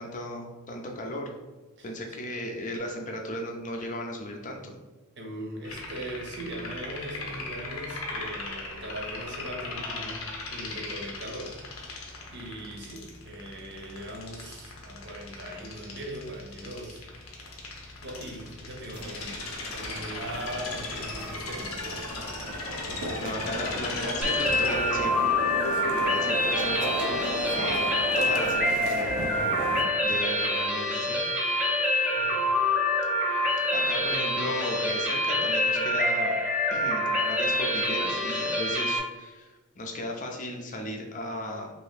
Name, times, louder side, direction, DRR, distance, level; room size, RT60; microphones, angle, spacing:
voice 1, 0.0-1.3 1.8-4.8 23.2-25.2 26.1-27.0 27.5-29.1 30.0-31.2 33.3-36.4 36.7-41.7, left 1 dB, 35° left, 2 dB, 0.5 m, -36 dB
voice 2, 5.2-12.0 12.3-17.1 18.0-19.4 19.7-21.8 25.9-26.3 32.2-32.5, right 1 dB, 55° right, -1 dB, 0.8 m, -40 dB
sound 1, 5.6-24.7, left 3 dB, 75° left, 0.7 m, -38 dB
sound 2, 18.9-29.8, equal, 85° right, 0.6 m, -35 dB
sound 3, 24.2-39.0, left 1 dB, 5° right, 0.6 m, -26 dB
2.7 x 2.7 x 3.5 m, 1.2 s
head